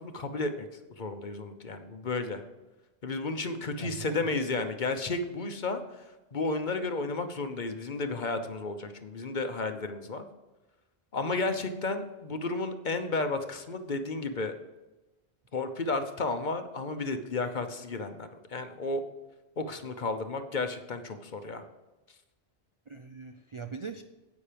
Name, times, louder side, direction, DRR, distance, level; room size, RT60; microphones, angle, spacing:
voice 1, 0.0-2.4 3.0-6.0 6.3-10.2 11.1-14.6 15.5-19.0 19.6-21.6, left 3 dB, 45° left, 8 dB, 1.0 m, -32 dB
voice 2, 3.8-4.3 22.9-24.0, right 5 dB, 45° right, 7 dB, 0.4 m, -41 dB
10.0 x 8.4 x 5.1 m, 1.1 s
omnidirectional pair, 1.1 m